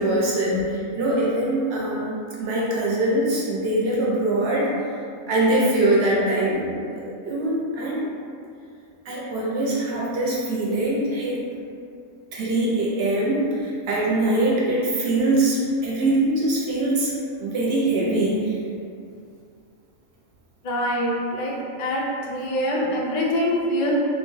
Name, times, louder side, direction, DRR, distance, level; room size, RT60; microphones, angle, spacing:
voice 1, 0.0-4.7 5.3-8.0 9.1-11.4 12.3-17.1 17.4-18.5, right 1 dB, 65° right, -5 dB, 0.7 m, -23 dB
voice 2, 20.6-21.5 21.8-23.9, left 1 dB, 90° left, -3 dB, 0.3 m, -24 dB
2.6 x 2.1 x 3.0 m, 2.4 s
omnidirectional pair, 1.3 m